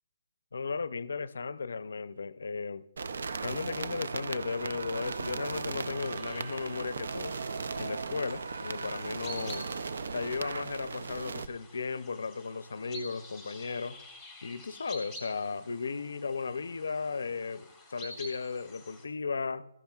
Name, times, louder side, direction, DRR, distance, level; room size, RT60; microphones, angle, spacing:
voice 1, 0.5-2.9 3.4-7.4 7.8-9.7 10.1-14.0 14.4-19.6, left 4 dB, 85° left, 0.5 m, -35 dB
sound 1, 3.0-11.5, right 4 dB, 70° right, 0.4 m, -37 dB
sound 2, 6.0-19.0, left 1 dB, 5° right, 1.3 m, -50 dB
13.5 x 11.5 x 2.3 m
hypercardioid pair, 170°, 0 cm